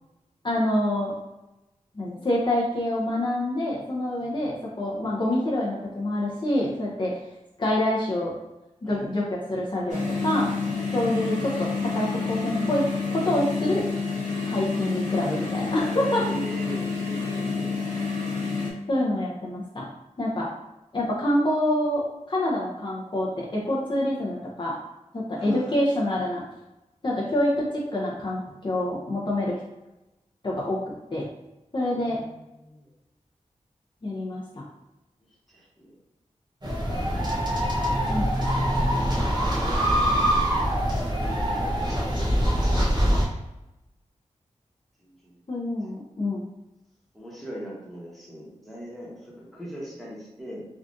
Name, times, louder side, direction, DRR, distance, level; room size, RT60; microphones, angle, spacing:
voice 1, 0.4-1.1 2.0-7.2 7.6-8.3 8.8-10.5 10.9-12.8 13.1-13.8 14.4-16.2 18.9-19.9 20.2-20.5 20.9-24.8 25.1-26.4 27.0-29.6 30.4-30.8 31.1-31.2 31.7-32.2 34.0-34.6 38.0-38.2 45.5-46.5, left 1 dB, 40° left, -4 dB, 0.6 m, -26 dB
voice 2, 4.2-4.6 8.8-9.2 16.2-17.8 25.3-25.8 27.2-27.3 31.7-32.9 35.5-36.0 38.9-40.6 41.1-42.6 45.0-45.4 47.1-50.6, right 1 dB, ahead, -6 dB, 1.1 m, -41 dB
sound 1, 9.9-18.7, left 4 dB, 70° left, 0.9 m, -29 dB
sound 2, 36.6-43.3, equal, 35° right, 0.9 m, -24 dB
3.5 x 2.4 x 2.6 m, 0.98 s
wide cardioid pair, 85°, 13 cm